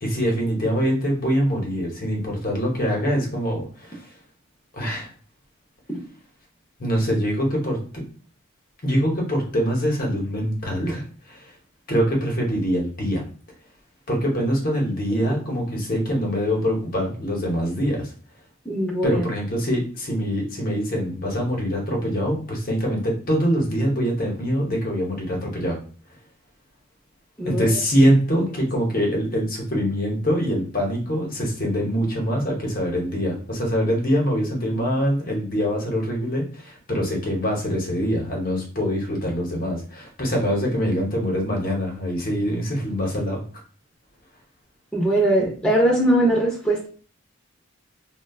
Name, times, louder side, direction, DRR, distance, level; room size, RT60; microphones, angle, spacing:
voice 1, 0.0-4.0 4.7-5.1 6.8-7.8 8.8-11.4 11.9-13.2 14.1-18.1 19.0-25.8 27.4-43.4, equal, 45° left, -1 dB, 0.8 m, -24 dB
voice 2, 18.6-19.2 27.4-27.8 44.9-46.9, right 1 dB, 5° left, -3 dB, 0.7 m, -21 dB
3.7 x 2.1 x 2.3 m, 0.41 s
head